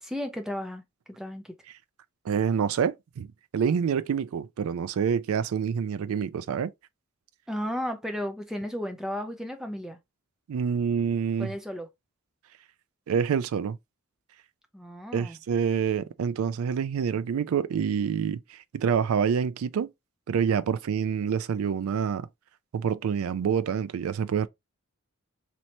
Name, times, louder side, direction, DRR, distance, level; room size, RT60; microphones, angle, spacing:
voice 1, 0.0-0.8 1.2-1.5 7.5-10.0 11.4-11.9 14.7-15.4, equal, ahead, 0.5 m, -34 dB
voice 2, 2.3-3.3 3.5-6.7 10.5-11.5 13.1-13.8 15.1-19.9 20.3-22.3 22.7-24.5, right 7 dB, 75° right, 0.3 m, -27 dB
3.2 x 2.8 x 2.8 m
head